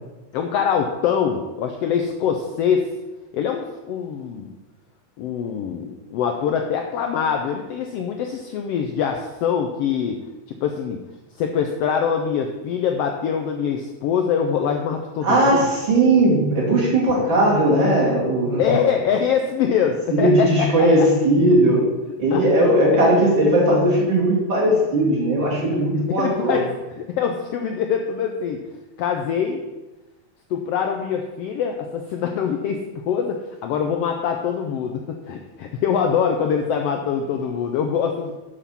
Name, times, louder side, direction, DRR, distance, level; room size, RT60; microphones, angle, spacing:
voice 1, 0.3-2.9 3.3-4.5 5.2-10.2 10.5-11.0 11.4-15.7 18.6-20.7 22.3-22.4 22.9-23.0 26.1-26.7 26.9-28.6 29.0-29.6 30.5-38.3, left 7 dB, 90° left, 4 dB, 1.3 m, -24 dB
voice 2, 15.2-18.6 20.1-21.8 22.2-26.6, right 1 dB, 40° right, -4 dB, 2.8 m, -18 dB
7.1 x 6.8 x 5.7 m, 1.1 s
omnidirectional pair, 3.5 m